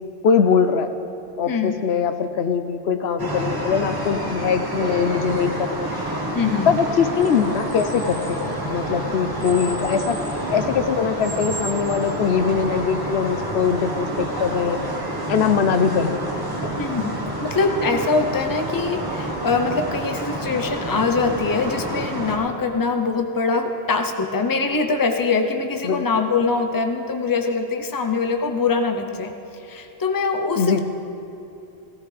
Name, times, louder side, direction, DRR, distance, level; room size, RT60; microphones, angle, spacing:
voice 1, 0.2-0.9 1.4-5.9 6.7-10.2 10.5-14.8 15.3-16.2 25.8-26.0 30.6-30.8, left 6 dB, 75° left, 8 dB, 0.9 m, -21 dB
sound 1, 3.2-22.4, right 1 dB, 20° right, 1.5 m, -28 dB
voice 2, 6.3-6.7 16.8-29.3 29.7-30.8, left 4 dB, 20° left, 5 dB, 0.7 m, -23 dB
17.0 x 17.0 x 3.4 m, 2.7 s
omnidirectional pair, 1.1 m